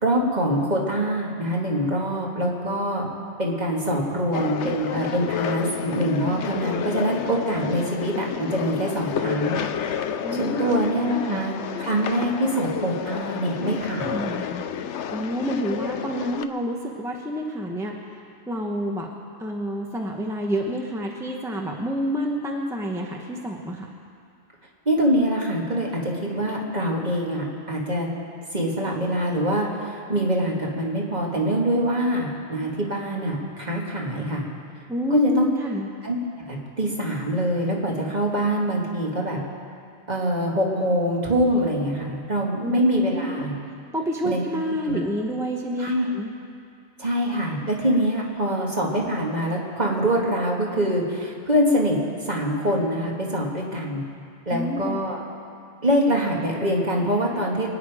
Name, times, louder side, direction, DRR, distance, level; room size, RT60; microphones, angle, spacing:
voice 1, 0.0-3.1 3.4-9.6 10.3-14.2 24.9-28.1 28.5-34.4 35.1-35.5 36.0-36.2 36.5-39.4 40.1-43.5 44.2-44.4 44.9-45.0 45.8-46.1 47.0-52.0 52.3-54.0 54.5-55.2 55.8-57.7, equal, 40° right, -2 dB, 2.1 m, -24 dB
sound 1, 4.3-16.5, left 8 dB, 85° left, 1.0 m, -30 dB
voice 2, 10.2-11.4 14.0-14.6 15.1-18.0 18.5-19.1 19.4-23.9 34.9-35.9 42.6-42.8 43.1-43.5 43.9-46.3 54.5-55.0, equal, 5° right, 0 dB, 1.0 m, -28 dB
24.5 x 9.4 x 4.9 m, 2.4 s
omnidirectional pair, 1.2 m